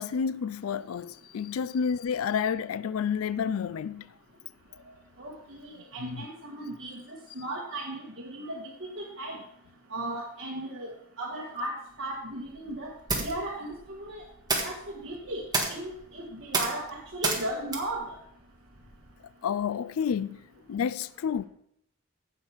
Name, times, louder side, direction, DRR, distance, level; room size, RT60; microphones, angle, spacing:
voice 1, 0.0-4.1 6.1-6.2 19.4-20.4 20.7-21.4, left 7 dB, 90° left, 0.4 m, -30 dB
voice 2, 5.2-8.7 9.0-9.4 9.9-10.9 11.2-14.2 14.6-15.4 15.7-18.2, right 1 dB, 55° right, 1.9 m, -36 dB
sound 1, 11.9-19.2, right 3 dB, 20° right, 1.6 m, -34 dB
16.0 x 5.8 x 4.6 m
head